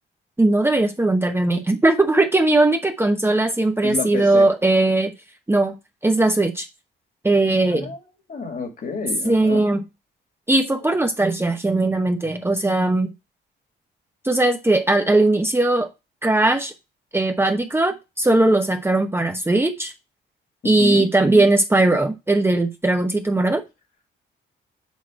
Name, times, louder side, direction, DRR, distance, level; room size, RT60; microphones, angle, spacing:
voice 1, 0.4-5.1 5.5-5.7 6.0-6.7 7.2-7.9 9.2-9.8 10.5-13.1 14.2-15.9 16.2-16.7 17.1-19.9 20.6-23.6, right 2 dB, 10° right, 1.0 m, -19 dB
voice 2, 3.8-4.5 7.6-8.0 8.3-9.6 20.6-21.1, left 4 dB, 45° left, 2.4 m, -29 dB
8.3 x 3.1 x 6.2 m
cardioid pair, 90°, 20 cm